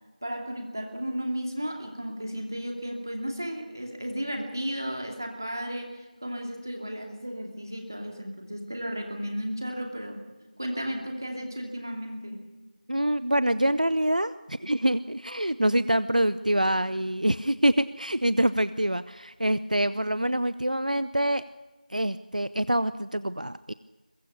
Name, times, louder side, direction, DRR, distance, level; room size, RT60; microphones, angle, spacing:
voice 1, 0.2-10.2 10.6-12.4, equal, 25° right, 2 dB, 2.5 m, -34 dB
voice 2, 12.9-21.4 21.9-23.7, right 1 dB, 60° right, 15 dB, 0.7 m, -25 dB
22.5 x 21.5 x 6.8 m, 1.2 s
figure-of-eight pair, 180°, 5 cm